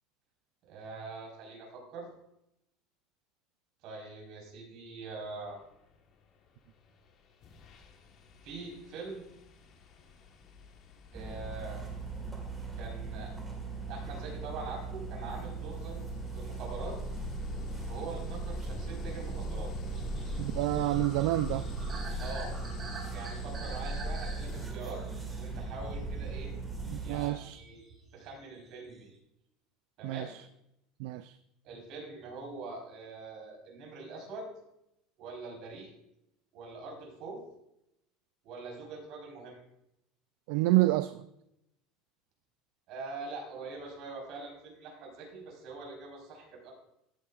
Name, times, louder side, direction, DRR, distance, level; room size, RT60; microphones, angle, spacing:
voice 1, 0.7-2.1 3.8-5.6 8.4-9.2 11.1-11.8 12.7-13.3 13.9-17.0 17.9-19.7 22.2-22.5 23.1-25.0 25.4-26.5 27.0-27.8 28.1-29.1 30.0-30.3 31.6-34.5 35.2-35.9 36.5-37.4 38.4-39.6 42.9-46.7, right 3 dB, 55° right, 0 dB, 4.3 m, -43 dB
sound 1, 6.9-7.1 7.4-24.7, left 2 dB, 45° left, 1.3 m, -42 dB
sound 2, 11.1-27.3, right 5 dB, 10° right, 1.7 m, -40 dB
sound 3, 19.9-26.4 26.8-28.2 28.5-29.1, right 3 dB, 25° right, 2.2 m, -47 dB
voice 2, 20.4-21.7 26.9-27.6 30.0-30.4 31.0-31.3 40.5-41.3, right 17 dB, 75° right, 12 dB, 0.3 m, -28 dB
14.0 x 8.7 x 2.4 m, 0.82 s
supercardioid pair, 140°, 0 cm